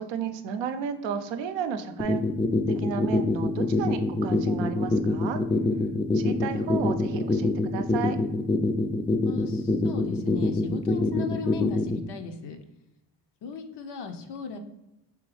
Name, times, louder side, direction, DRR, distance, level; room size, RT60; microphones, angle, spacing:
voice 1, 0.0-2.2 2.8-5.4 6.1-8.2, right 7 dB, 80° right, 8 dB, 0.5 m, -33 dB
sound 1, 2.0-12.0, left 2 dB, 10° left, 0.3 m, -24 dB
voice 2, 9.3-12.6 13.4-14.6, left 6 dB, 65° left, 5 dB, 0.6 m, -36 dB
3.6 x 3.0 x 3.1 m, 0.91 s
supercardioid pair, 60°, 44 cm